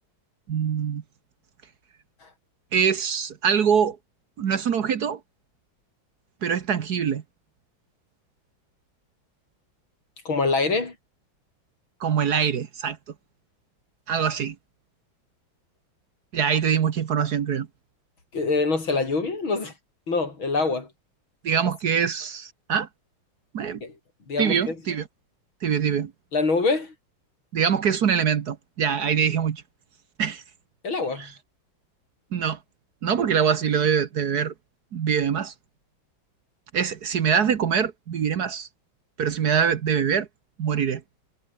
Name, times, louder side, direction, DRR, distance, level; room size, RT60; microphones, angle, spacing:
voice 1, 0.5-1.0 2.7-4.0 4.4-5.2 6.4-7.2 12.0-13.0 14.1-14.5 16.3-17.7 21.4-22.9 23.5-23.8 24.4-25.1 25.6-26.1 27.5-29.6 30.2-30.4 31.2-31.3 32.3-32.6 33.0-34.5 34.9-35.5 36.7-38.7 39.2-40.3 40.6-41.0, right 7 dB, 55° right, 1.6 m, -24 dB
voice 2, 10.3-11.0 18.3-19.7 20.1-20.9 23.8-24.0 24.3-24.8 26.3-26.9 30.8-31.3, left 3 dB, 75° left, 5.5 m, -24 dB
omnidirectional pair, 2.2 m